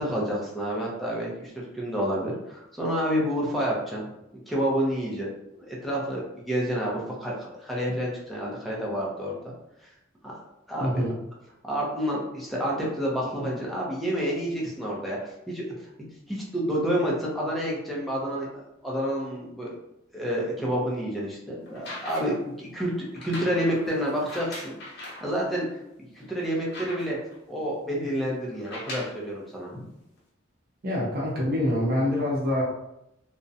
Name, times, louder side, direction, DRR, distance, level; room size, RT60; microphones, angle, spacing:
voice 1, 0.0-4.1 4.5-5.3 5.6-9.4 10.2-10.3 10.7-11.0 11.6-15.6 16.3-19.7 20.1-25.7 26.1-27.2 27.5-29.9, equal, ahead, -5 dB, 0.5 m, -29 dB
voice 2, 10.8-11.1 30.8-32.6, left 1 dB, 50° right, -5 dB, 0.6 m, -25 dB
sound 1, 21.7-22.5 23.1-25.3 25.9-26.0 26.3-27.3 28.5-29.2 30.2-30.3, left 1 dB, 60° left, 0.7 m, -40 dB
2.4 x 2.1 x 2.6 m, 0.84 s
head